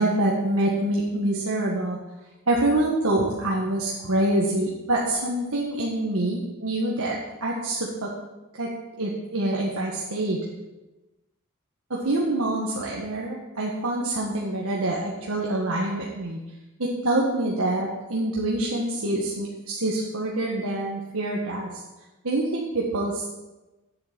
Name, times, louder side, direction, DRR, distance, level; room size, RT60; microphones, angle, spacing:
voice 1, 0.0-2.0 2.5-8.1 8.6-8.7 9.0-10.4 11.9-16.4 16.8-21.7 22.2-23.4, right 1 dB, 75° right, -3 dB, 1.6 m, -26 dB
7.9 x 7.8 x 7.5 m, 1.1 s
head